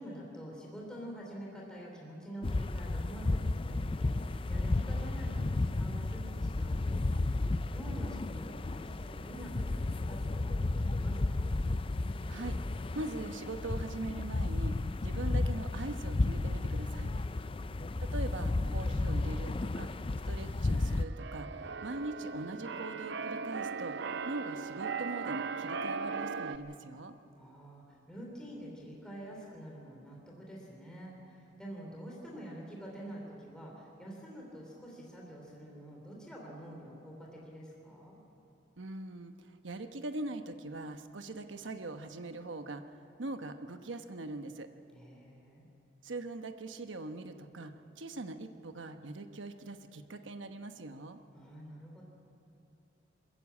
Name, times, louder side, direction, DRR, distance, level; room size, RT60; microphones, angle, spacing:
voice 1, 0.0-7.4 7.7-11.7 17.4-18.2 27.3-38.2 44.9-45.7 51.3-52.0, right 1 dB, 5° left, -3 dB, 3.1 m, -47 dB
sound 1, 2.4-21.0, left 2 dB, 30° left, 0.4 m, -33 dB
voice 2, 12.9-17.1 18.0-19.9 20.3-21.5 21.8-24.0 24.3-27.1 38.8-39.3 39.6-42.8 43.2-44.7 46.0-51.2, right 2 dB, 75° right, 8 dB, 1.1 m, -41 dB
Keyboard (musical), 20.7-26.6, right 5 dB, 60° right, 0.6 m, -38 dB
21.5 x 14.5 x 8.5 m, 2.8 s
head